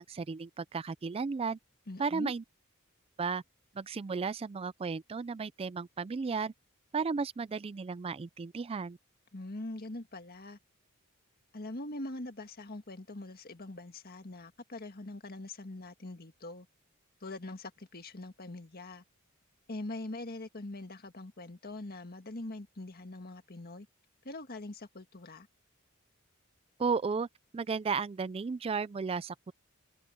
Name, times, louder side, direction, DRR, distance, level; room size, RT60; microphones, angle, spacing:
voice 1, 0.0-1.6 2.0-2.4 3.2-3.4 3.7-6.5 6.9-9.0 26.8-27.3 27.5-29.5, right 5 dB, 25° right, 0.3 m, -34 dB
voice 2, 1.9-2.3 9.3-10.6 11.5-16.7 17.2-19.0 19.7-23.9 24.2-25.5, left 2 dB, 45° left, 1.8 m, -43 dB
head